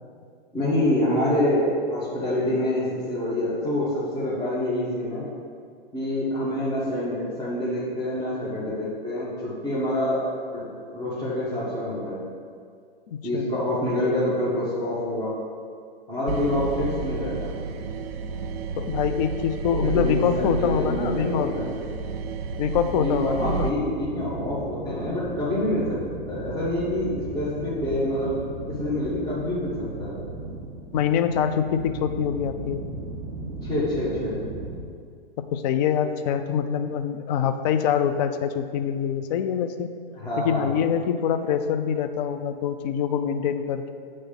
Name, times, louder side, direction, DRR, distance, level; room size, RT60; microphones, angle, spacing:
voice 1, 0.5-5.2 5.9-10.2 10.5-12.2 13.2-15.3 16.1-17.5 19.8-21.7 22.9-26.0 26.3-28.4 28.7-29.7 30.0-30.2 33.6-34.4 40.1-40.9, left 1 dB, 10° left, -10 dB, 1.6 m, -26 dB
voice 2, 13.1-13.5 18.8-21.5 22.6-23.7 30.9-32.8 35.5-39.9 40.4-43.9, left 8 dB, 45° left, 8 dB, 0.5 m, -25 dB
sound 1, 16.3-34.8, right 3 dB, 40° right, 1.4 m, -38 dB
sound 2, 16.3-23.7, right 4 dB, 80° right, 0.5 m, -31 dB
8.2 x 3.2 x 5.8 m, 2.2 s
hypercardioid pair, 115°, 30 cm